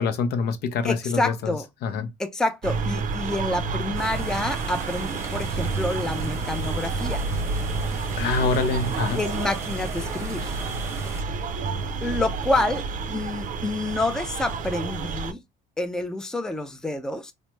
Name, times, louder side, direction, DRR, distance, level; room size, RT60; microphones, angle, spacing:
voice 1, 0.0-1.5 1.8-2.1 8.2-9.2, left 4 dB, 70° left, 0.6 m, -25 dB
voice 2, 0.8-1.7 2.2-7.2 9.2-10.6 12.0-15.4 15.8-17.3, left 2 dB, 5° left, 0.4 m, -28 dB
sound 1, 2.6-15.3, right 4 dB, 50° right, 0.5 m, -29 dB
sound 2, 3.9-11.2, right 2 dB, 15° right, 0.8 m, -39 dB
3.2 x 2.0 x 3.0 m
cardioid pair, 110°, 17 cm